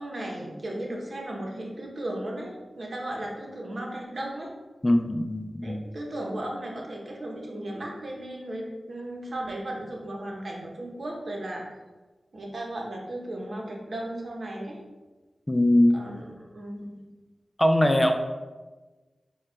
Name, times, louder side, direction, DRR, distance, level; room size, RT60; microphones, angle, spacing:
voice 1, 0.0-4.5 5.6-11.8 12.3-14.8 15.9-17.0, right 1 dB, 55° right, -1 dB, 1.0 m, -35 dB
voice 2, 4.8-5.8 15.5-16.0 17.6-18.1, left 1 dB, 15° left, 5 dB, 0.3 m, -21 dB
4.7 x 2.3 x 4.7 m, 1.2 s
wide cardioid pair, 90°, 0 cm